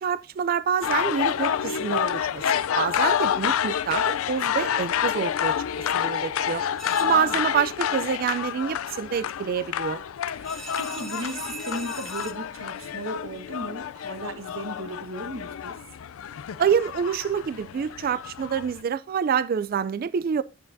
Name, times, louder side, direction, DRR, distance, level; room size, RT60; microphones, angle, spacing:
voice 1, 0.0-5.6 5.9-6.6 7.0-10.0 16.6-20.4, right 7 dB, 45° right, 0.3 m, -27 dB
sound 1, 0.8-18.8, left 8 dB, 85° left, 0.4 m, -28 dB
sound 2, 6.8-7.6 10.4-12.3, right 1 dB, ahead, 1.0 m, -40 dB
voice 2, 6.9-7.4 10.4-15.8, right 1 dB, 70° right, 1.2 m, -36 dB
9.7 x 8.5 x 2.6 m
head